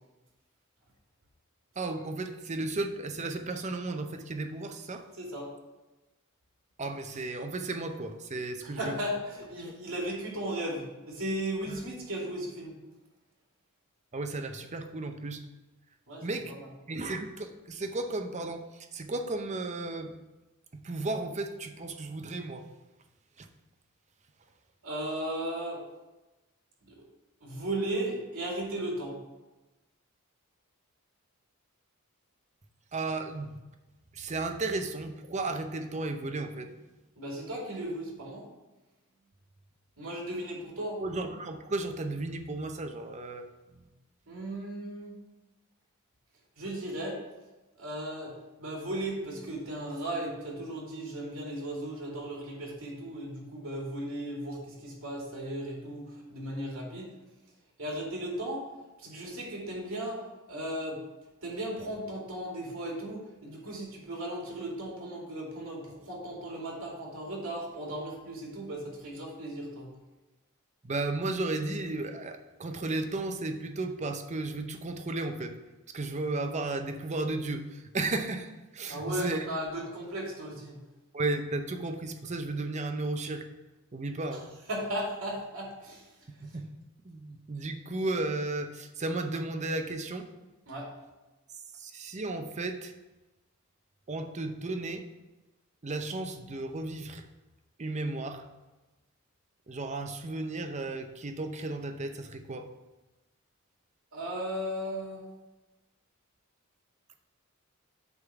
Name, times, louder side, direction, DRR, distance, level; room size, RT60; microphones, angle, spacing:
voice 1, 1.8-5.1 6.8-8.9 9.6-9.7 11.7-11.8 14.1-15.4 16.2-16.6 16.9-20.1 20.8-22.7 23.4-23.5 32.9-33.5 34.1-36.7 41.0-43.5 70.8-75.5 75.9-79.5 81.1-83.4 83.9-84.5 86.4-86.7 87.0-90.3 91.8-92.9 94.1-95.0 95.8-97.3 97.8-98.4 99.7-102.7, right 2 dB, 35° right, 6 dB, 0.6 m, -34 dB
voice 2, 5.1-5.5 8.6-12.7 16.1-16.7 24.8-25.8 26.9-27.0 27.4-29.2 37.2-38.4 40.0-41.0 44.3-45.2 46.6-47.2 47.8-57.1 57.8-58.7 59.0-61.0 61.4-69.9 78.9-80.8 84.3-84.4 84.7-86.1 90.7-90.9 104.1-105.2, right 1 dB, 80° right, -2 dB, 2.5 m, -36 dB
8.0 x 3.7 x 5.8 m, 1.1 s
head